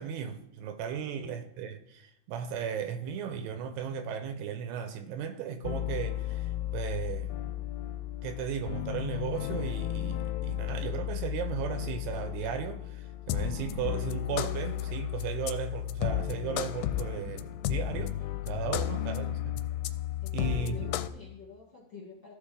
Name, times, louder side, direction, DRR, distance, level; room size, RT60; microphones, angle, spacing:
voice 1, 0.0-7.3 8.2-18.1 18.4-19.6 20.3-20.8, right 8 dB, 80° right, 2.7 m, -36 dB
voice 2, 1.0-1.3 18.8-19.2 20.2-22.3, left 4 dB, 30° left, 2.4 m, -48 dB
sound 1, 5.6-21.1, left 13 dB, 85° left, 2.5 m, -33 dB
15.0 x 5.1 x 3.7 m
omnidirectional pair, 4.9 m